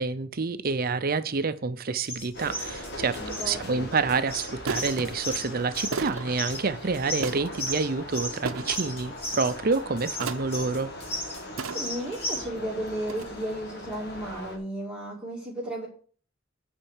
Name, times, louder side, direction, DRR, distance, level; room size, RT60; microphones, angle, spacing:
voice 1, 0.0-10.9, right 4 dB, 45° right, 12 dB, 0.6 m, -28 dB
sound 1, 2.1-12.5, equal, 30° left, 2.5 m, -35 dB
sound 2, 2.3-14.6, left 1 dB, 55° left, 1.8 m, -40 dB
voice 2, 3.2-3.9 11.6-15.9, right 1 dB, 5° right, -7 dB, 2.1 m, -34 dB
sound 3, 3.5-3.7 4.7-5.1 5.9-6.3 7.2-7.6 8.5-8.9 10.2-10.6 11.6-12.1 13.1-13.2, right 4 dB, 75° right, 0.7 m, -33 dB
8.8 x 4.4 x 7.2 m, 0.44 s
head